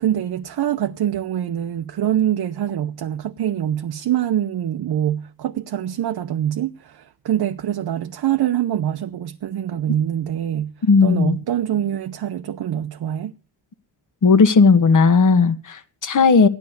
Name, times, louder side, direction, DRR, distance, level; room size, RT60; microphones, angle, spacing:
voice 1, 0.0-10.7 11.0-13.3, right 11 dB, 55° right, 0.8 m, -24 dB
voice 2, 10.9-11.4 14.2-16.5, left 4 dB, 40° left, 1.4 m, -15 dB
15.0 x 10.5 x 6.7 m
cardioid pair, 90°, 46 cm